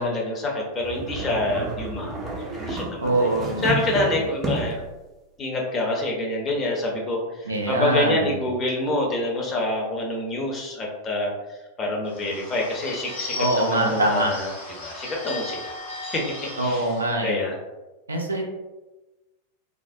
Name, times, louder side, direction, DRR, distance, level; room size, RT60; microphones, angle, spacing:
voice 1, 0.0-3.1 3.6-4.8 5.4-14.5 14.8-15.7 16.0-16.2 16.6-16.9 17.2-17.5, left 1 dB, 25° left, -1 dB, 0.6 m, -27 dB
sound 1, 0.8-4.9, right 1 dB, 25° right, 0.5 m, -31 dB
voice 2, 3.0-3.7 7.5-8.3 13.4-14.3 16.6-17.3 18.1-18.4, right 1 dB, 80° right, 0 dB, 0.4 m, -23 dB
Bird / Bell, 12.1-17.0, left 2 dB, 75° left, 1.2 m, -36 dB
2.4 x 2.0 x 2.5 m, 1.1 s
figure-of-eight pair, 90°, 0 cm